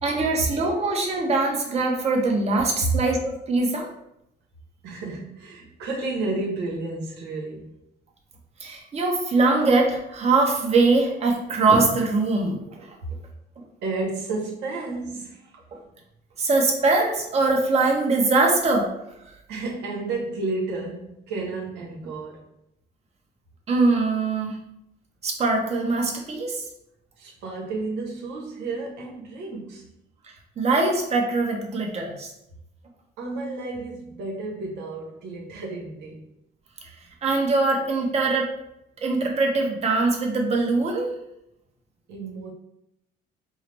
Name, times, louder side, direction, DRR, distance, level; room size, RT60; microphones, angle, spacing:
voice 1, 0.0-3.9 8.6-12.9 15.7-15.8 16.4-18.9 23.7-24.6 25.2-26.6 30.6-32.3 37.2-38.5 39.0-41.1, right 3 dB, 40° right, 0.9 m, -22 dB
voice 2, 4.8-7.8 13.0-13.1 13.8-15.6 19.5-22.4 27.2-29.9 33.2-36.3 42.1-42.5, right 3 dB, 90° right, 0.9 m, -32 dB
4.5 x 2.0 x 3.3 m
cardioid pair, 110°, 17 cm